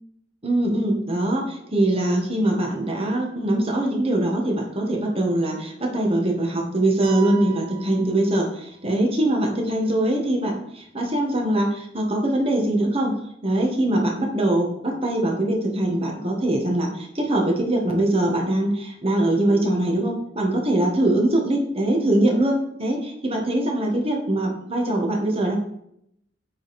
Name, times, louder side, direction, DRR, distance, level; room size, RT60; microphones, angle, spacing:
voice 1, 0.4-13.1 13.4-25.6, right 1 dB, 30° right, 1 dB, 1.4 m, -22 dB
sound 1, 7.0-8.9, right 11 dB, 70° right, 0.9 m, -38 dB
8.3 x 4.0 x 4.2 m, 0.74 s
head